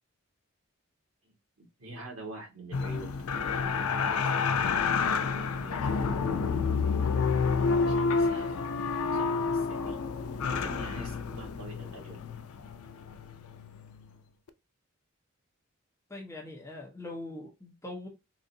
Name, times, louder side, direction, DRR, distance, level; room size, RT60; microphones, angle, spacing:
voice 1, 1.2-3.1 3.5-5.8 7.8-10.0 10.5-12.2, right 2 dB, 80° right, 1.7 m, -46 dB
sound 1, 2.7-14.1 14.5-14.6, left 5 dB, 85° left, 0.4 m, -29 dB
voice 2, 16.1-18.1, left 2 dB, 15° left, 0.8 m, -42 dB
3.9 x 2.6 x 2.6 m
head